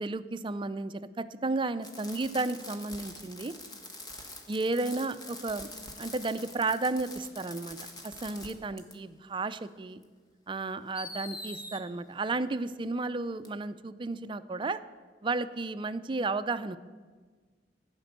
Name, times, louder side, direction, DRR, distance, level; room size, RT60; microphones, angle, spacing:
voice 1, 0.0-3.5 4.5-5.7 6.0-7.8 8.0-10.0 10.5-14.8 15.2-16.8, right 3 dB, 30° right, 13 dB, 0.4 m, -33 dB
Fireworks, 1.8-8.5 8.8-8.9 10.0-10.1 10.9-11.8 13.4-13.5, left 2 dB, 25° left, 1.4 m, -44 dB
15.0 x 5.2 x 8.0 m, 1.5 s
head